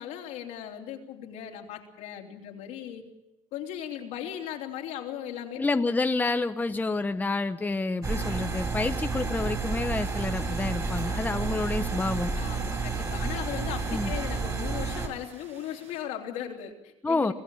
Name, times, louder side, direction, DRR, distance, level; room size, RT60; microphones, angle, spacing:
voice 1, 0.0-3.1 3.5-5.6 11.1-11.3 12.4-17.3, left 10 dB, 80° left, 1 dB, 3.3 m, -38 dB
voice 2, 5.6-12.3 13.9-14.1 17.0-17.3, left 3 dB, 15° left, 8 dB, 0.9 m, -28 dB
sound 1, 8.0-15.1, right 4 dB, 30° right, 4.5 m, -30 dB
sound 2, 9.8-16.0, right 5 dB, 60° right, 7.8 m, -54 dB
25.5 x 15.5 x 7.2 m, 0.98 s
cardioid pair, 105°, 12 cm